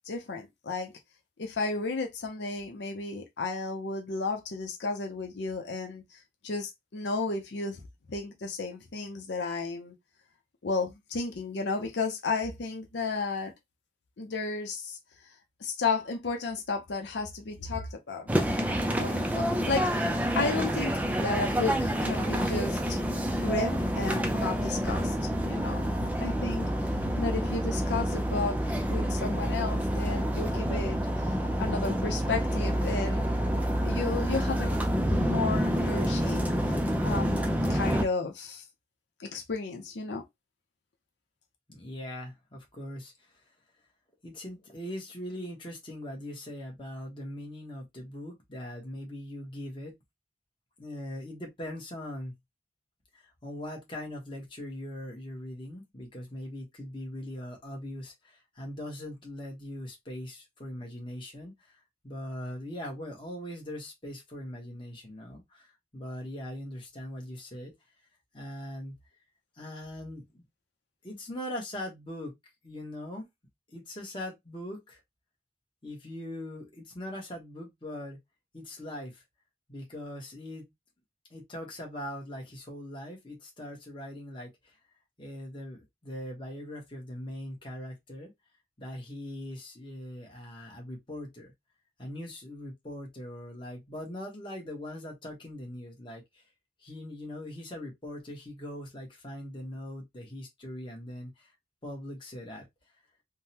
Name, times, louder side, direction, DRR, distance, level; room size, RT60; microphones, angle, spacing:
voice 1, 0.1-0.9 1.4-7.8 8.1-10.0 10.6-13.5 14.2-15.0 15.6-18.3 18.8-23.0 23.4-25.2 25.4-25.9 26.2-36.5 37.0-38.6 39.2-40.2, left 3 dB, 75° left, 0.6 m, -33 dB
sound 1, 18.3-38.0, equal, 10° right, 0.4 m, -28 dB
voice 2, 41.7-43.4 44.2-49.9 50.8-52.3 53.1-67.7 68.3-68.9 69.5-70.4 71.0-72.4 72.6-73.3 73.7-75.0 75.8-78.2 78.5-79.2 79.7-80.7 81.3-84.8 85.2-88.3 88.8-91.5 92.0-96.4 96.8-101.5 101.8-102.7, left 1 dB, 25° left, 1.1 m, -41 dB
3.6 x 2.1 x 2.8 m
head